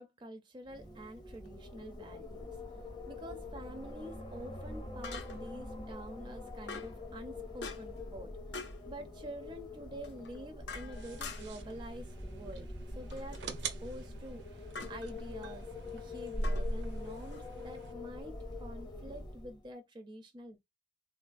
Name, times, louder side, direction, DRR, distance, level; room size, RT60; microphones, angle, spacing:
voice 1, 0.0-2.6 3.1-8.3 8.9-13.5 13.8-20.6, right 1 dB, 25° right, 0.4 m, -47 dB
Wind, 0.6-19.7, left 1 dB, 25° left, 0.7 m, -43 dB
sound 1, 1.3-1.5 5.0-5.6 6.7-7.0 7.6-8.0 8.5-8.8 10.0-11.7 13.1-13.5 14.7-15.0 16.4-17.4, left 4 dB, 75° left, 0.5 m, -45 dB
sound 2, 10.9-17.9, right 6 dB, 80° right, 0.5 m, -48 dB
3.5 x 2.3 x 2.4 m
head